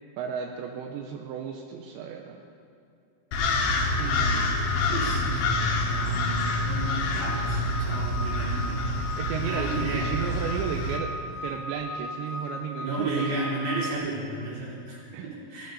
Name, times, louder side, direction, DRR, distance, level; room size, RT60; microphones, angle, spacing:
voice 1, 0.2-2.4 4.0-4.4 9.0-11.1 11.4-13.5 15.1-15.3, right 7 dB, 85° right, 2 dB, 3.0 m, -34 dB
sound 1, 3.3-11.0, left 2 dB, 80° left, 3.6 m, -27 dB
sound 2, 3.9-13.9, left 1 dB, 50° left, 2.1 m, -37 dB
voice 2, 4.9-8.9 9.4-10.1 12.8-15.7, right 2 dB, 55° right, -6 dB, 5.5 m, -33 dB
19.0 x 14.5 x 4.2 m, 2.5 s
omnidirectional pair, 5.3 m